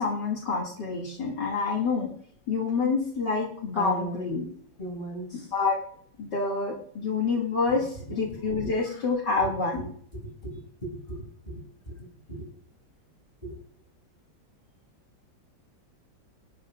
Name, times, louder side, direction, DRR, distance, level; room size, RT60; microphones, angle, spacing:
voice 1, 0.0-2.1 2.5-4.5 5.5-5.8 6.2-9.8, left 4 dB, 60° left, -3 dB, 3.0 m, -27 dB
voice 2, 3.7-4.3 4.8-5.5 8.6-8.7 9.4-9.5 10.4-12.5 13.4-13.5, right 2 dB, 25° left, -2 dB, 7.2 m, -38 dB
27.5 x 12.5 x 2.5 m, 0.62 s
omnidirectional pair, 2.1 m